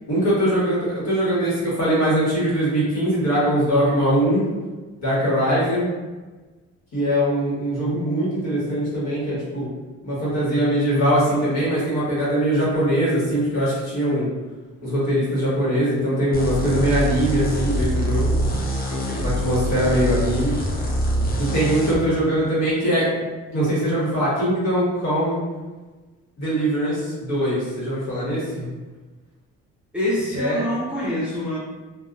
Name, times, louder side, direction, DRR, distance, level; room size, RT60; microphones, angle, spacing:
voice 1, 0.1-4.5 5.0-5.9 6.9-9.7 10.0-14.3 14.8-18.4 19.2-20.6 21.4-23.1 23.5-25.4 26.4-28.7 30.3-30.6, equal, 60° left, -8 dB, 1.3 m, -21 dB
sound 1, 16.3-22.0, right 1 dB, 30° left, 0.6 m, -24 dB
voice 2, 18.9-19.3 29.9-31.6, left 1 dB, 5° right, -8 dB, 0.7 m, -26 dB
2.6 x 2.2 x 2.4 m, 1.3 s
cardioid pair, 90°, 30 cm